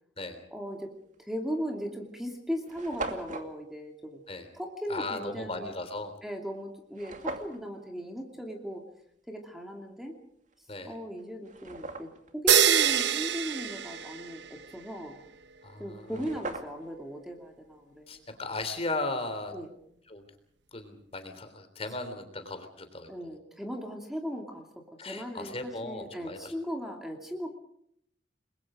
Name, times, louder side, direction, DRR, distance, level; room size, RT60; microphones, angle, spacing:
voice 1, 0.5-0.9 1.2-4.2 4.5-5.7 6.2-8.8 9.3-10.1 10.8-15.2 15.8-18.2 19.5-19.7 23.1-27.5, equal, ahead, 2 dB, 2.8 m, -38 dB
sound 1, 1.1-1.3 2.0-2.1 2.3-2.4 2.6-3.5 6.9-7.6 10.5-10.6 11.2-12.3 15.7-15.8 16.0-17.0, right 2 dB, 45° right, 2.4 m, -39 dB
voice 2, 4.9-6.1 10.7-11.0 15.6-16.3 18.1-19.5 20.1-20.2 20.7-23.3 25.0-26.5, left 2 dB, 35° left, 8 dB, 3.4 m, -37 dB
sound 2, 12.5-14.6, right 9 dB, 70° right, 1.0 m, -25 dB
29.5 x 22.0 x 5.1 m, 0.69 s
head